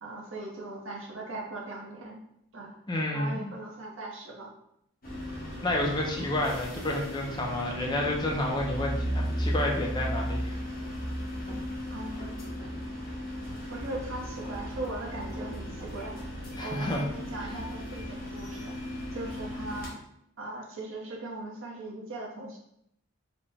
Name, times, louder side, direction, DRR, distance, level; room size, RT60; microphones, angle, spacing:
voice 1, 0.0-2.2 2.5-2.8 3.1-4.5 11.9-12.5 13.7-16.2 16.6-18.7 19.1-20.0 20.4-22.6, right 2 dB, 70° right, -1 dB, 0.7 m, -39 dB
voice 2, 2.9-3.5 5.6-10.6 16.6-17.0, left 1 dB, 20° left, -1 dB, 0.4 m, -30 dB
sound 1, 5.0-19.9, equal, 40° left, 1.0 m, -35 dB
4.0 x 2.1 x 3.3 m, 0.76 s
head